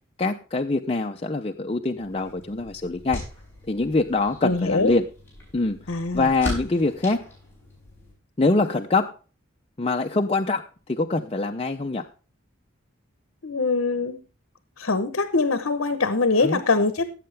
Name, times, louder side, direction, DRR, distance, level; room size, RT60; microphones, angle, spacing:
voice 1, 0.2-3.2 3.7-5.0 5.5-5.8 6.1-7.2 8.4-9.1 9.8-12.1 16.4-16.6, left 3 dB, 30° left, 4 dB, 0.6 m, -24 dB
sound 1, 2.0-8.1, left 1 dB, 10° left, 7.1 m, -39 dB
voice 2, 4.4-4.9 5.9-6.3 13.4-14.2 14.8-17.0, left 3 dB, 70° left, 11 dB, 1.0 m, -23 dB
17.5 x 7.8 x 3.4 m, 0.37 s
head